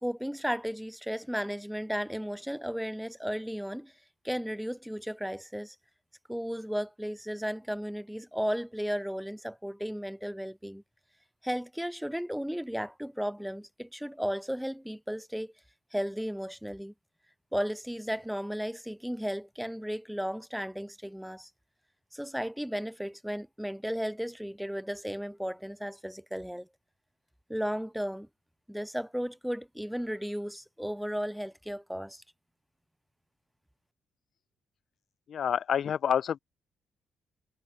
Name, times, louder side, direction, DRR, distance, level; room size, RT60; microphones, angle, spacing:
voice 1, 0.0-3.9 4.2-5.7 6.3-10.8 11.4-15.5 15.9-16.9 17.5-21.5 22.1-26.7 27.5-28.3 28.7-32.2, equal, ahead, 1.6 m, -34 dB
voice 2, 35.3-36.4, left 8 dB, 60° left, 0.9 m, -28 dB
cardioid pair, 90°, 0 cm